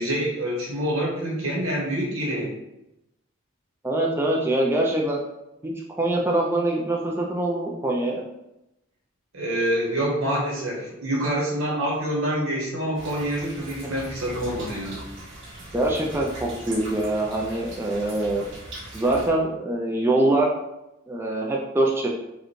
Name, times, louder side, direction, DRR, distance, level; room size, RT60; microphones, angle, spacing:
voice 1, 0.0-2.5 9.3-15.0, right 1 dB, 85° right, -3 dB, 1.2 m, -26 dB
voice 2, 3.8-5.2 5.6-8.3 15.7-18.4 18.9-20.5 21.1-22.1, right 1 dB, 10° right, -2 dB, 0.3 m, -24 dB
sound 1, 12.9-19.3, right 1 dB, 65° right, 1.4 m, -40 dB
4.8 x 2.2 x 3.1 m, 0.89 s
head